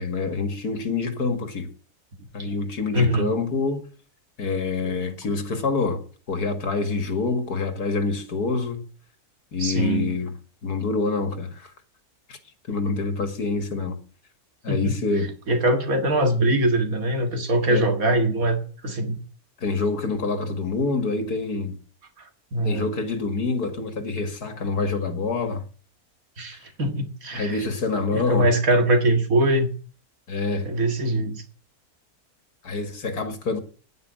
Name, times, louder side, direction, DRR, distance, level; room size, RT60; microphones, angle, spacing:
voice 1, 0.0-1.7 2.3-3.9 4.4-6.0 6.3-8.8 9.5-10.3 10.6-11.7 12.3-12.4 12.7-14.0 14.6-15.3 17.7-17.8 19.6-21.8 22.6-25.6 27.3-28.5 30.3-30.7 32.6-33.6, left 4 dB, 90° left, 2.6 m, -26 dB
voice 2, 2.9-3.3 4.8-5.0 9.6-10.1 14.7-14.9 15.5-19.2 22.2-22.9 26.4-27.6 28.1-29.7 30.6-31.4, right 1 dB, 65° right, 2.3 m, -22 dB
9.7 x 9.7 x 7.8 m
omnidirectional pair, 1.6 m